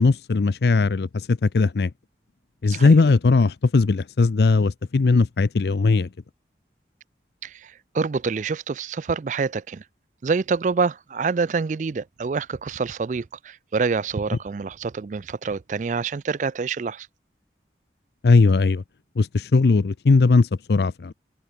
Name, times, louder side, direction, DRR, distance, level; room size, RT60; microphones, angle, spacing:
voice 1, 0.0-1.9 2.6-6.1 18.2-18.8 19.2-21.1, left 3 dB, 65° left, 0.5 m, -19 dB
voice 2, 7.4-9.8 10.2-17.1, right 4 dB, 45° right, 0.4 m, -26 dB
head